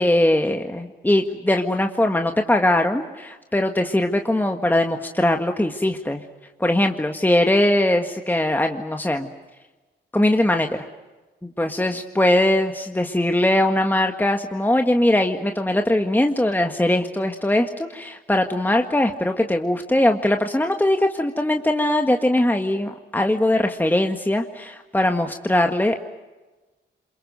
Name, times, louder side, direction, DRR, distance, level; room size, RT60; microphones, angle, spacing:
voice 1, 0.0-6.2 6.6-9.3 10.1-10.7 11.4-26.0, left 1 dB, 10° left, 4 dB, 1.8 m, -21 dB
27.0 x 22.5 x 8.0 m, 1.2 s
supercardioid pair, 60°, 20 cm